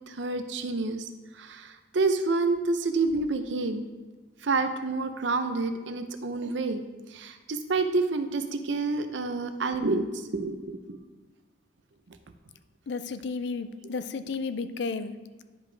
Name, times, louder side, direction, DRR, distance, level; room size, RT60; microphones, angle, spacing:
voice 1, 0.1-1.1 1.4-3.8 4.4-6.8 7.1-11.0, right 3 dB, 80° right, 8 dB, 0.6 m, -28 dB
voice 2, 12.9-15.1, left 4 dB, 70° left, 11 dB, 0.4 m, -32 dB
10.5 x 5.1 x 3.3 m, 1.3 s
head